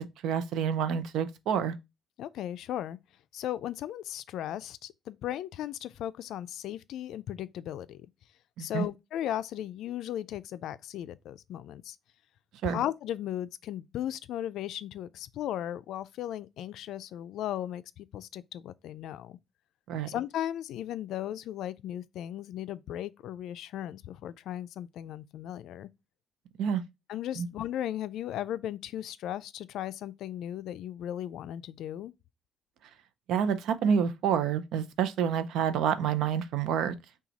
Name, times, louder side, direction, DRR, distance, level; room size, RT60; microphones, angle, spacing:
voice 1, 0.2-1.7 8.6-8.9 12.6-12.8 19.9-20.1 26.6-26.8 27.4-27.5 33.3-36.9, right 8 dB, 85° right, 0.5 m, -28 dB
voice 2, 2.2-3.0 3.3-8.1 8.6-12.0 12.6-19.4 20.1-25.9 27.1-32.1, left 11 dB, 80° left, 0.3 m, -36 dB
5.8 x 2.3 x 4.0 m
cardioid pair, 150°, 0 cm